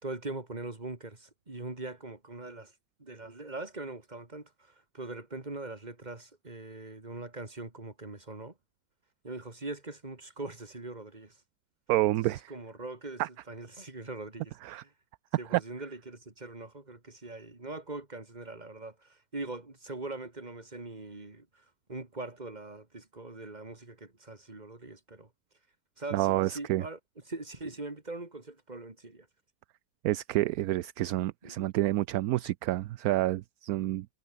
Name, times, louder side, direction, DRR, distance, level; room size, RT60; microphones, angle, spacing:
voice 1, 0.0-2.7 3.0-8.5 9.2-11.4 12.3-14.5 14.8-14.9 15.4-25.3 26.0-27.0 27.3-29.3 31.4-31.7, right 2 dB, 25° right, 2.9 m, -42 dB
voice 2, 11.9-12.5 13.2-13.3 14.6-14.8 15.5-15.6 26.1-26.8 30.0-34.1, right 16 dB, 70° right, 1.0 m, -28 dB
omnidirectional pair, 1.8 m